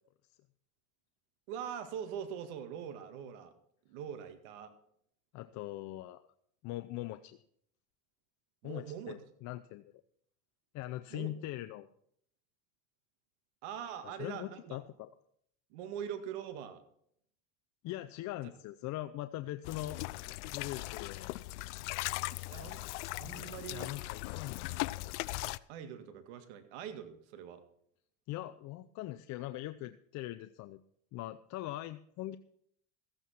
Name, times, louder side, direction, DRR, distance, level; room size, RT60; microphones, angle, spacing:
voice 1, 1.5-3.5 3.9-4.7 8.6-9.2 11.1-11.3 13.6-14.8 15.7-16.8 22.5-22.8 23.2-23.9 25.7-27.6, right 8 dB, 80° right, 9 dB, 2.1 m, -43 dB
voice 2, 5.3-6.2 6.6-7.4 8.6-9.9 10.7-11.9 14.0-15.1 17.8-20.0 20.4-21.4 23.7-24.9 28.3-30.8 31.1-32.4, left 15 dB, 55° left, 11 dB, 0.7 m, -41 dB
sound 1, 19.6-25.6, left 20 dB, 90° left, 0.5 m, -39 dB
14.0 x 9.0 x 5.9 m, 0.67 s
supercardioid pair, 105°, 34 cm